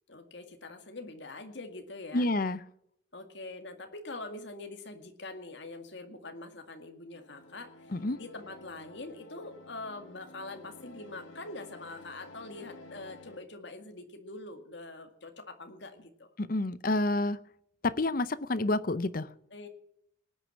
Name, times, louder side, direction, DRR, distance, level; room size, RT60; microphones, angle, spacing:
voice 1, 0.1-2.3 3.1-16.3 19.5-19.7, left 2 dB, 60° left, 5 dB, 2.1 m, -44 dB
voice 2, 2.1-2.6 7.9-8.2 16.4-17.4 17.8-19.3, left 2 dB, 45° left, 16 dB, 0.7 m, -29 dB
sound 1, 7.1-13.4, left 2 dB, 80° left, 1.6 m, -52 dB
19.0 x 9.5 x 5.9 m, 0.72 s
head